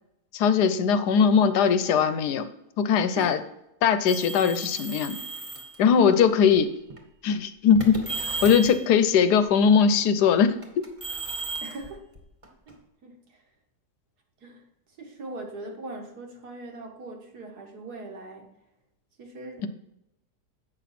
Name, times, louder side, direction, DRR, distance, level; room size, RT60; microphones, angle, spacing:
voice 1, 0.3-2.5 2.8-3.4 3.8-5.2 5.8-6.7 7.2-8.0 8.4-10.5, left 7 dB, 75° left, 11 dB, 1.2 m, -20 dB
sound 1, 4.1-5.8 6.6-7.0 7.7-8.8 10.6-12.7, right 3 dB, 20° right, 1.3 m, -35 dB
voice 2, 11.6-12.1 12.7-13.4 14.4-14.6 15.0-18.5 19.2-19.7, right 2 dB, 70° right, 1 dB, 2.0 m, -40 dB
8.5 x 5.9 x 4.2 m, 0.85 s
omnidirectional pair, 1.8 m